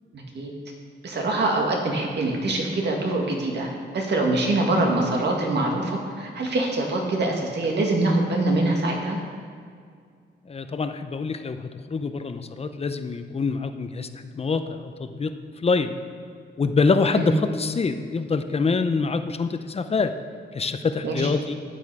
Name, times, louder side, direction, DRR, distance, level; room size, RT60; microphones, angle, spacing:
voice 1, 0.1-0.5 1.0-9.2 17.1-17.4 21.0-21.3, right 2 dB, 65° right, 0 dB, 2.0 m, -24 dB
voice 2, 10.5-15.3 15.6-15.9 16.6-20.1 20.5-21.5, left 4 dB, 30° left, 9 dB, 0.6 m, -25 dB
11.5 x 9.0 x 4.9 m, 2.2 s
wide cardioid pair, 110°, 19 cm